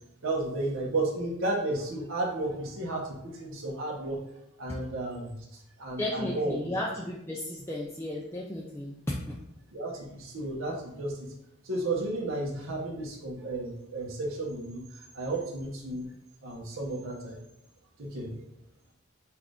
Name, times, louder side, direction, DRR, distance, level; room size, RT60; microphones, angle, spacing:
voice 1, 0.2-4.2 4.6-6.7 7.5-7.6 9.7-11.3 11.6-16.1 16.4-17.4 18.0-18.3, right 2 dB, 70° right, -3 dB, 1.0 m, -33 dB
voice 2, 6.0-9.3, left 1 dB, 10° left, -4 dB, 0.4 m, -34 dB
5.8 x 2.5 x 3.4 m, 0.78 s
head